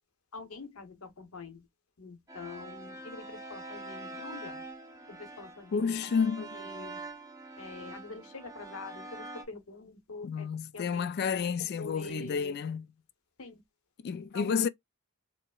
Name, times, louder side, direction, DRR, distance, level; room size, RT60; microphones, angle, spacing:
voice 1, 0.3-1.7 2.0-4.7 5.1-6.0 6.4-7.1 7.6-10.5 10.7-11.1 11.4-12.5 13.4-13.6 14.3-14.6, left 3 dB, 85° left, 0.9 m, -45 dB
sound 1, 2.3-9.4, right 2 dB, 15° right, 0.7 m, -45 dB
voice 2, 5.7-6.4 10.2-12.9 14.0-14.7, left 6 dB, 50° left, 0.3 m, -30 dB
4.6 x 2.0 x 2.3 m
head